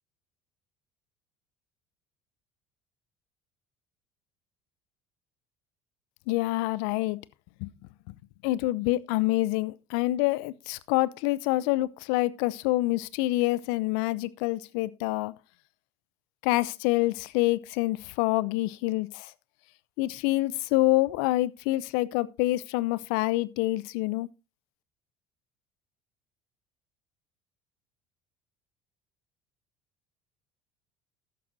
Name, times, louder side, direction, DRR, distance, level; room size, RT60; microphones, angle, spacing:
voice 1, 6.3-7.2 7.6-7.7 8.4-15.3 16.4-19.3 20.0-24.3, left 18 dB, 70° left, 0.7 m, -27 dB
13.5 x 11.0 x 2.7 m
hypercardioid pair, 70°, 13 cm